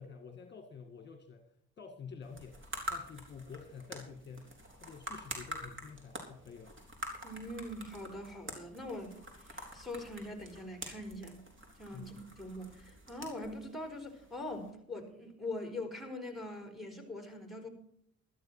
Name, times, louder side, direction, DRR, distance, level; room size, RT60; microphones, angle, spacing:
voice 1, 0.0-1.5 1.8-6.7 11.9-12.2, left 5 dB, 35° left, 1.9 m, -49 dB
sound 1, 2.2-14.7, right 1 dB, 40° right, 4.4 m, -47 dB
voice 2, 7.2-11.4 11.8-17.7, left 1 dB, ahead, 4.0 m, -43 dB
14.0 x 13.0 x 4.4 m
cardioid pair, 90°, 30 cm